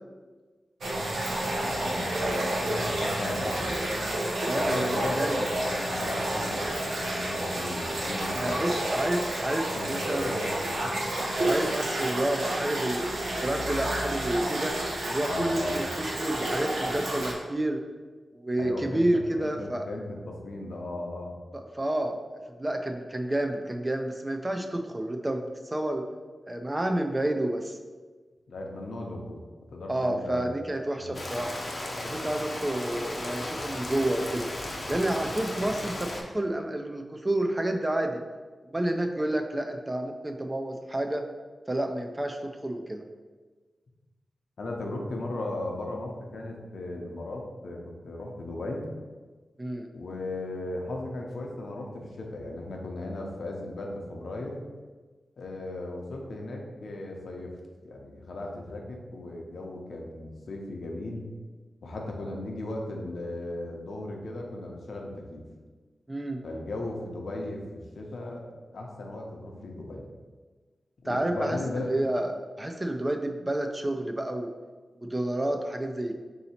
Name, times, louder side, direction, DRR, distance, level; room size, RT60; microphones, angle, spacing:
sound 1, 0.8-17.3, right 1 dB, 90° right, 0.8 m, -30 dB
voice 1, 1.4-2.3 2.7-3.7 4.5-8.9 9.7-10.9 15.2-15.9 18.6-21.4 28.5-29.4 29.7-30.4 31.0-31.4 32.0-32.3 44.6-48.9 49.9-54.6 55.4-57.5 57.8-61.3 61.8-65.4 66.4-68.4 68.7-70.1 71.0-71.9, left 2 dB, 70° left, 0 dB, 0.7 m, -36 dB
voice 2, 4.4-5.4 8.3-10.3 11.2-14.7 15.1-17.8 18.3-19.8 21.7-22.2 22.6-26.0 26.5-27.8 29.9-31.6 32.1-34.5 34.9-38.2 38.7-41.3 41.7-43.0 49.6-49.9 66.1-66.4 71.1-71.6 71.9-74.5 75.0-76.2, right 1 dB, 20° right, 4 dB, 0.3 m, -29 dB
Rain, 31.1-36.2, left 1 dB, 35° left, 0.6 m, -35 dB
3.9 x 2.7 x 4.2 m, 1.4 s
wide cardioid pair, 110°, 0 cm